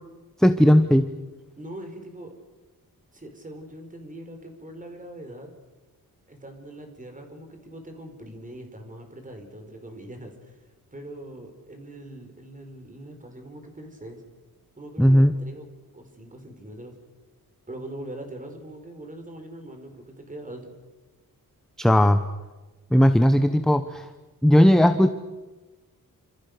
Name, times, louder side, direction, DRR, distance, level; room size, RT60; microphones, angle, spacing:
voice 1, 0.4-1.1 15.0-15.3 21.8-22.2 22.9-24.0 24.4-25.1, equal, ahead, 9 dB, 0.9 m, -17 dB
voice 2, 1.6-2.3 3.1-5.5 6.3-14.2 14.8-15.7 15.9-16.9 17.7-20.7, right 1 dB, 20° right, 5 dB, 4.9 m, -42 dB
28.5 x 27.0 x 6.8 m, 1.2 s
wide cardioid pair, 160°, 36 cm